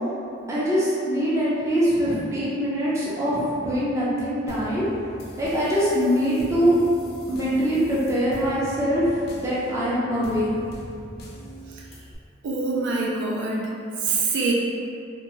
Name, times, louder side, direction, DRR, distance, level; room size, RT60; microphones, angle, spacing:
voice 1, 0.5-4.9 5.4-6.8 7.3-10.5, equal, 15° right, -9 dB, 0.5 m, -23 dB
sound 1, 4.5-12.2, equal, 55° left, 0.4 m, -42 dB
voice 2, 11.7-12.0 12.4-13.7 14.0-14.5, right 3 dB, 65° right, -3 dB, 0.3 m, -25 dB
2.6 x 2.2 x 3.0 m, 2.5 s
head